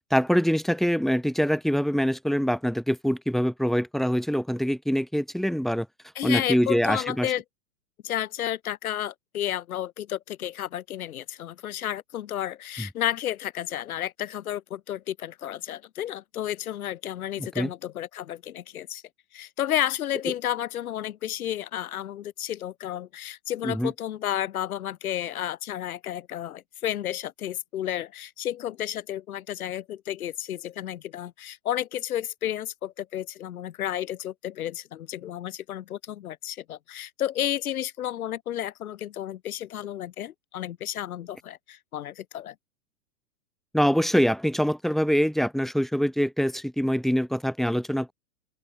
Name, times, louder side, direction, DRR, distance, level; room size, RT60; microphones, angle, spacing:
voice 1, 0.1-5.9 6.2-7.3 12.8-12.9 17.4-17.7 23.6-23.9 43.7-48.1, equal, ahead, 0.8 m, -24 dB
voice 2, 6.1-7.4 8.0-19.0 19.3-42.5, left 11 dB, 85° left, 1.0 m, -32 dB
open air
hypercardioid pair, 125°, 42 cm